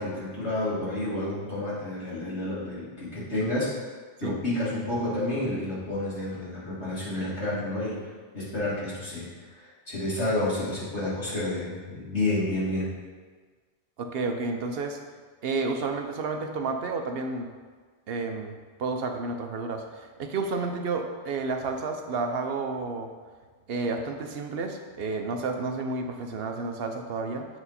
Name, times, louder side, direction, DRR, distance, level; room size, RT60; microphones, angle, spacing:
voice 1, 0.0-3.8 4.2-8.0 8.3-12.9, left 1 dB, 80° left, -10 dB, 2.8 m, -30 dB
voice 2, 14.0-15.0 15.4-17.5 18.1-23.1 23.7-27.5, right 3 dB, 65° right, 4 dB, 0.9 m, -31 dB
7.7 x 4.6 x 4.2 m, 1.5 s
omnidirectional pair, 1.1 m